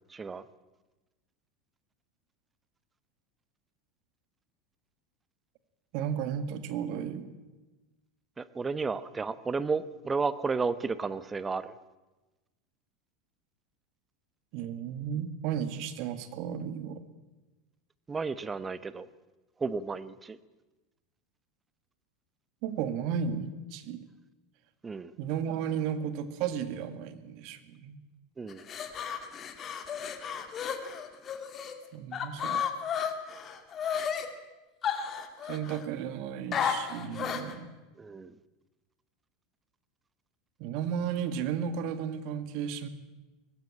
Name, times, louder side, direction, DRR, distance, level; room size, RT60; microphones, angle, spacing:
voice 1, 0.1-0.4 8.4-11.7 18.1-19.1 19.6-20.4 24.8-25.1 28.4-28.7 38.0-38.3, right 4 dB, 20° right, 15 dB, 1.1 m, -32 dB
voice 2, 5.9-7.4 14.5-17.0 22.6-24.1 25.2-28.0 31.9-32.6 35.4-37.7 40.6-42.9, right 8 dB, 55° right, 11 dB, 1.9 m, -34 dB
sound 1, 28.5-31.7 32.1-34.3 34.8-35.8 36.5-37.5, left 8 dB, 35° left, 2.4 m, -33 dB
19.5 x 15.5 x 8.9 m, 1.1 s
hypercardioid pair, 85°, 0 cm